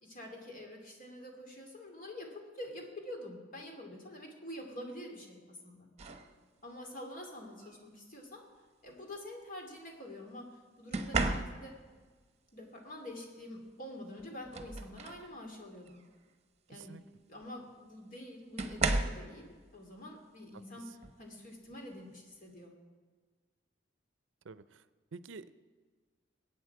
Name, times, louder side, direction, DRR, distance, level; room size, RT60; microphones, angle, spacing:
voice 1, 0.0-5.9 6.6-8.5 8.8-11.8 12.5-16.0 16.7-17.0 17.3-19.4 19.7-20.9 21.2-22.7, left 1 dB, 45° left, 2 dB, 2.7 m, -46 dB
sound 1, 6.0-6.3 7.6-7.9 10.9-11.9 13.7-13.8 14.2-15.3 15.8-16.1 17.4-17.5 18.6-19.3 21.0-21.2 21.7-22.0, right 3 dB, 35° right, 1.0 m, -34 dB
voice 2, 16.7-17.0 24.4-24.8 25.1-25.5, right 4 dB, 75° right, 15 dB, 0.5 m, -48 dB
21.0 x 8.8 x 4.8 m, 1.5 s
head